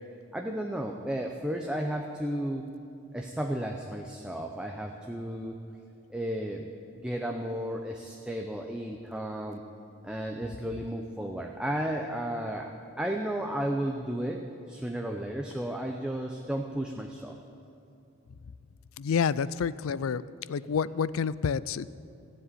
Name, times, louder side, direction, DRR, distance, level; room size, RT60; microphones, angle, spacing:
voice 1, 0.3-2.6 3.1-5.6 6.1-6.7 7.0-9.6 10.0-12.7 13.0-14.4 14.7-17.4, right 1 dB, 5° right, 1 dB, 0.6 m, -33 dB
voice 2, 19.0-20.2 20.5-21.9, left 6 dB, 80° left, 18 dB, 0.4 m, -28 dB
15.0 x 7.6 x 9.8 m, 2.6 s
head